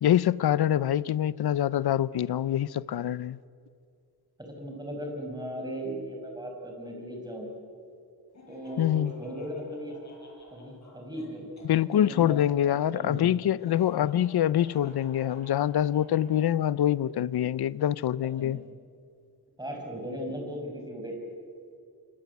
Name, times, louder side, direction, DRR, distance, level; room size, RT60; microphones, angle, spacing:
voice 1, 0.0-3.4 8.8-9.1 11.6-18.6, left 11 dB, 65° left, 0.6 m, -25 dB
voice 2, 4.6-7.5 8.5-10.1 10.5-11.7 12.0-12.4 12.6-13.2 16.1-16.3 18.4-18.6 19.6-21.1, equal, 10° right, 6.1 m, -37 dB
Laughter, 8.3-12.0 13.5-16.5, left 2 dB, 40° left, 7.2 m, -51 dB
27.5 x 24.0 x 8.3 m
wide cardioid pair, 150°, 41 cm